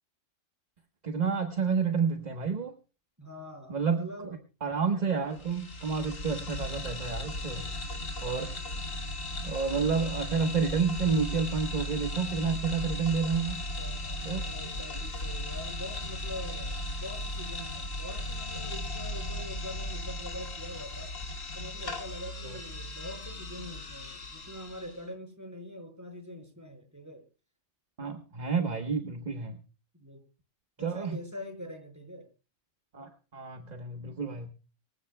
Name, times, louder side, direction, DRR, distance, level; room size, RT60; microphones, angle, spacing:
voice 1, 1.0-2.7 3.7-4.1 4.6-7.7 8.2-8.5 9.4-13.6 14.2-14.5 22.4-22.6 28.0-29.6 30.8-31.2 32.9-34.5, right 5 dB, 35° right, 6 dB, 1.3 m, -30 dB
voice 2, 3.2-4.4 7.3-7.7 13.7-21.1 21.5-27.2 28.8-28.9 30.0-30.2 30.8-32.3, left 1 dB, 15° right, 4 dB, 5.5 m, -44 dB
sound 1, 5.3-25.0, left 1 dB, 80° left, 2.8 m, -37 dB
25.0 x 15.5 x 2.3 m, 0.34 s
omnidirectional pair, 1.3 m